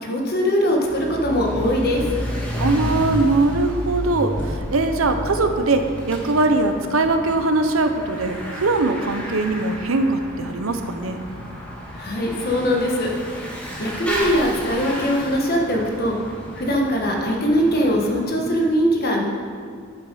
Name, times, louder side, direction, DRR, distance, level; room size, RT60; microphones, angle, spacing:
voice 1, 0.0-2.1 11.9-13.4 13.8-16.1 16.6-19.2, equal, 45° left, 0 dB, 1.4 m, -21 dB
Bicycle / Mechanisms, 0.7-18.3, equal, 5° left, 1.7 m, -31 dB
voice 2, 2.6-11.2, right 2 dB, 80° right, 7 dB, 0.8 m, -21 dB
9.1 x 7.3 x 5.6 m, 2.1 s
head